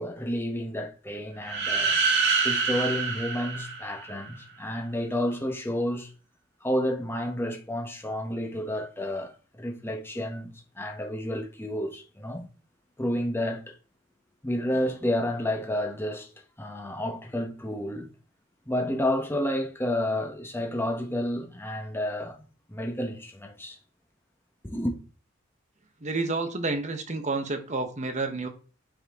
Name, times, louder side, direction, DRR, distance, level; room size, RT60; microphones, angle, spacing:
voice 1, 0.0-2.0 2.4-6.1 6.6-12.5 13.0-13.7 14.4-16.3 16.6-18.1 18.7-23.8 24.6-25.0, left 1 dB, 10° left, 1.1 m, -30 dB
sound 1, 1.4-4.3, right 4 dB, 55° right, 1.8 m, -26 dB
voice 2, 26.0-28.5, right 3 dB, 35° right, 1.2 m, -29 dB
9.0 x 4.4 x 3.7 m
head